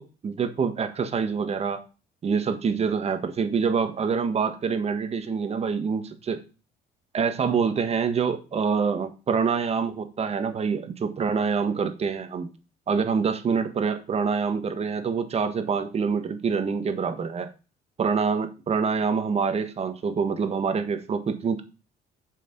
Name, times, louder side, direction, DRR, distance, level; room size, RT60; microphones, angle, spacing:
voice 1, 0.2-1.8 2.2-6.4 7.1-12.5 12.9-17.5 18.0-21.6, right 5 dB, 40° right, 8 dB, 1.4 m, -26 dB
7.3 x 5.8 x 5.4 m, 0.32 s
cardioid pair, 110°, 17 cm